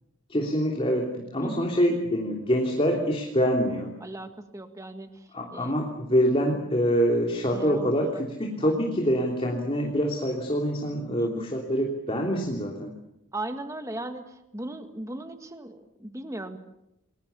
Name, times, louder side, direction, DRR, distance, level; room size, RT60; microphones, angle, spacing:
voice 1, 0.3-3.9 5.3-12.9, equal, 25° left, 0 dB, 3.2 m, -25 dB
voice 2, 4.0-5.7 7.5-7.9 8.6-8.7 11.2-11.5 13.3-16.6, right 1 dB, 15° right, 7 dB, 1.9 m, -37 dB
29.5 x 21.5 x 7.1 m, 0.84 s
head